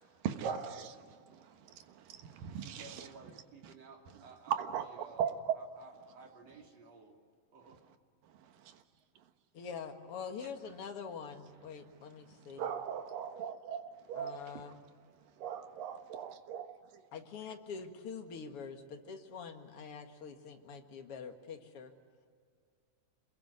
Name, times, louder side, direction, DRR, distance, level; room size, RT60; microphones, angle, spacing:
voice 1, 0.2-3.1 3.6-3.7 4.5-5.6 8.3-8.8 12.4-14.4 15.4-17.0, right 8 dB, 80° right, 3.0 m, -39 dB
voice 2, 2.4-4.6 5.0-7.1 7.5-7.8, right 4 dB, 50° right, 4.0 m, -55 dB
voice 3, 9.5-12.7 14.1-14.8 17.1-21.9, left 6 dB, 50° left, 2.4 m, -45 dB
27.5 x 22.0 x 9.9 m
omnidirectional pair, 3.9 m